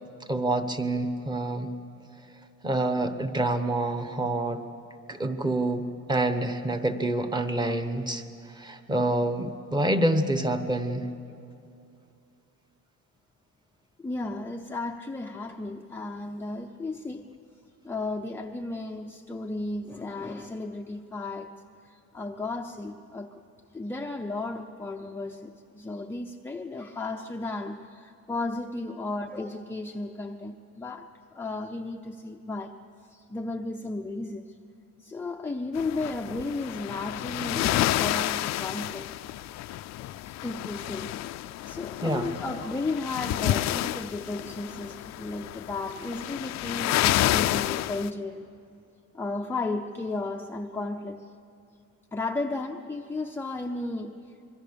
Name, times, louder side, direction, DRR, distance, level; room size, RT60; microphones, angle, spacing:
voice 1, 0.3-1.7 2.6-4.6 5.1-8.2 8.6-11.1 42.0-42.3, right 1 dB, 15° right, 1.0 m, -27 dB
voice 2, 14.0-17.3 17.8-21.5 21.9-23.4 23.7-32.8 33.1-34.5 35.0-39.2 40.2-41.2 41.7-48.5 49.1-51.2 52.1-54.2, left 2 dB, 5° left, 0.5 m, -34 dB
sound 1, 35.7-48.1, left 14 dB, 60° left, 0.5 m, -30 dB
25.5 x 23.0 x 6.9 m
cardioid pair, 175°, 31 cm